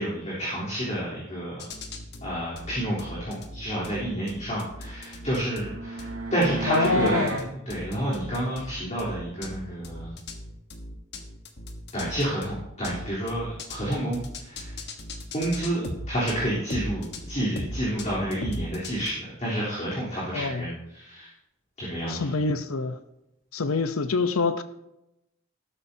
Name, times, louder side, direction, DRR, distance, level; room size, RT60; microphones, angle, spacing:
voice 1, 0.0-1.7 2.2-10.1 11.9-14.8 15.3-21.3 21.8-22.3, right 1 dB, 35° left, 3.6 m, -30 dB
sound 1, 1.6-19.1, left 1 dB, 55° left, 1.3 m, -38 dB
sound 2, 4.9-7.5, right 2 dB, 70° right, 2.9 m, -33 dB
voice 2, 6.7-7.4 20.3-20.7 22.1-23.0 23.5-24.6, left 4 dB, 85° left, 0.8 m, -26 dB
14.5 x 12.5 x 2.8 m
head